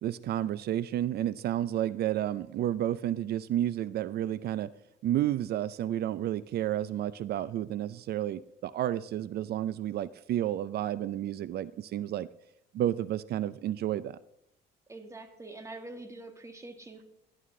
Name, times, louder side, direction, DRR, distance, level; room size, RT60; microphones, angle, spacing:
voice 1, 0.0-4.7 5.0-12.3 12.7-14.2, right 12 dB, 55° right, 17 dB, 0.5 m, -31 dB
voice 2, 14.9-17.1, right 2 dB, 15° right, 5 dB, 1.8 m, -45 dB
18.0 x 11.0 x 3.8 m, 0.78 s
cardioid pair, 120°, 20 cm